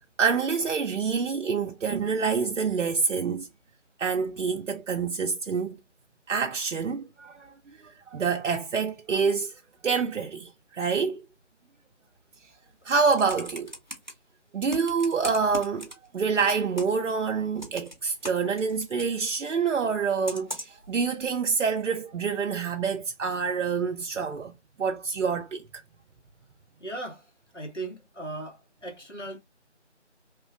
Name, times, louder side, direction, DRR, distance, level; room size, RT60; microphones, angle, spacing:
voice 1, 0.2-3.5 4.0-5.8 6.3-7.5 7.8-9.5 9.8-11.2 12.8-13.7 14.5-24.5 24.8-25.6, right 5 dB, 90° right, 0.5 m, -27 dB
Computer keyboard, 12.7-14.1 14.7-16.2 16.5-17.1 17.6-19.1 20.3-20.9 21.6-21.7, equal, 40° right, 0.6 m, -39 dB
voice 2, 26.8-29.4, right 2 dB, 75° left, 1.5 m, -38 dB
3.0 x 2.2 x 2.5 m
figure-of-eight pair, 175°, 36 cm